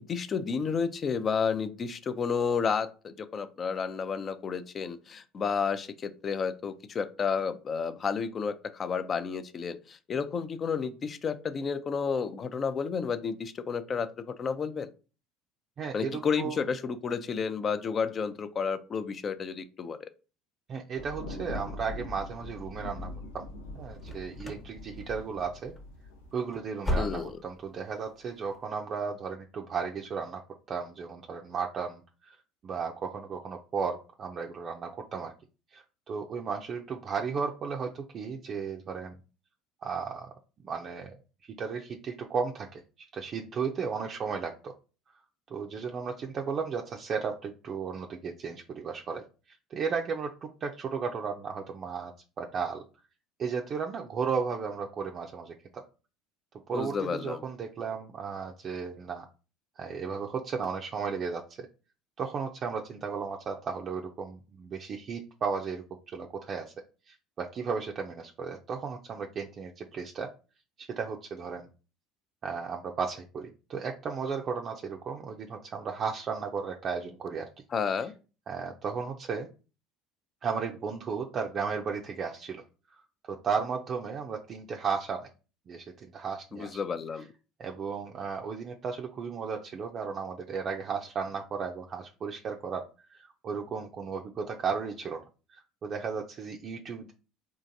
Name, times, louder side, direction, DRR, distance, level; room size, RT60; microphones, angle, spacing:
voice 1, 0.0-14.9 15.9-20.0 27.0-27.4 56.7-57.4 77.7-78.1 86.5-87.2, left 6 dB, 40° left, 12 dB, 0.4 m, -31 dB
voice 2, 15.8-16.6 20.7-23.5 23.7-25.7 26.3-30.4 30.7-32.4 32.6-35.3 35.7-39.2 39.8-40.3 40.6-41.1 41.6-42.8 43.1-44.7 45.5-49.2 49.7-52.1 52.4-52.8 53.4-55.8 56.7-59.3 59.8-61.7 62.2-66.7 67.1-70.3 70.8-71.7 72.4-77.5 78.5-79.5 80.4-82.6 82.9-85.3 85.7-86.8 87.6-92.8 93.1-95.2 95.5-97.1, right 5 dB, 45° right, 1 dB, 0.4 m, -34 dB
Thunder, 21.0-26.3, left 2 dB, 90° left, 0.6 m, -42 dB
sound 1, 24.0-24.7 25.0-25.4 25.7-25.9 26.3-27.6 27.9-28.0 28.5-28.6, left 1 dB, 20° left, 0.9 m, -34 dB
3.8 x 2.5 x 2.6 m, 0.34 s
hypercardioid pair, 70°, 0 cm